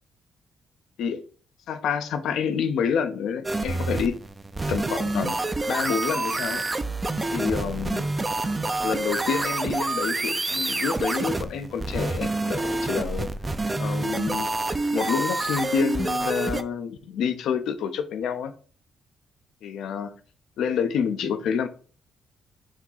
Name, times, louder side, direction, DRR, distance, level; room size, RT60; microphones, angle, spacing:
voice 1, 1.7-4.2 4.7-5.4 5.7-6.6 7.3-8.1 8.8-13.3 13.8-14.5 14.9-18.5 19.6-20.2 20.6-21.7, left 7 dB, 75° left, 0.5 m, -28 dB
sound 1, 3.4-16.6, right 2 dB, 20° right, 0.4 m, -27 dB
4.8 x 2.7 x 4.0 m
cardioid pair, 90°, 0 cm